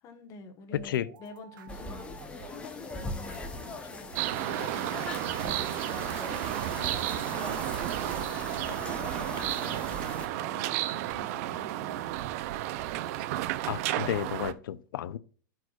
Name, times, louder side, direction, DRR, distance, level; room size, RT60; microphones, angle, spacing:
voice 1, 0.0-5.6 8.4-12.1, left 3 dB, 30° left, 1.1 m, -48 dB
voice 2, 0.7-1.1 13.7-15.2, left 11 dB, 80° left, 0.5 m, -32 dB
sound 1, 0.7-14.6, right 9 dB, 75° right, 0.9 m, -52 dB
sound 2, 1.7-10.3, left 3 dB, 10° left, 0.7 m, -40 dB
sound 3, 4.2-14.5, right 14 dB, 45° right, 0.4 m, -32 dB
12.5 x 4.7 x 2.3 m
supercardioid pair, 155°, 11 cm